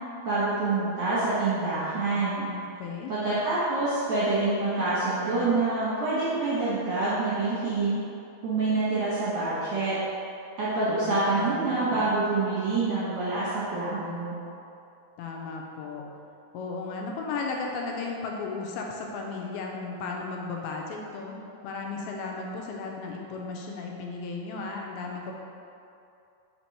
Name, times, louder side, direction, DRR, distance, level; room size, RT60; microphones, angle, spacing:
voice 1, 0.2-2.5 3.1-8.0 8.4-10.0 10.6-14.4, right 3 dB, 65° right, -11 dB, 1.8 m, -26 dB
voice 2, 1.9-2.5 2.8-3.1 10.9-12.1 15.2-16.0 16.5-21.4 21.6-25.3, left 4 dB, 85° left, 0 dB, 2.4 m, -35 dB
5.2 x 4.4 x 4.2 m, 2.6 s
omnidirectional pair, 4.5 m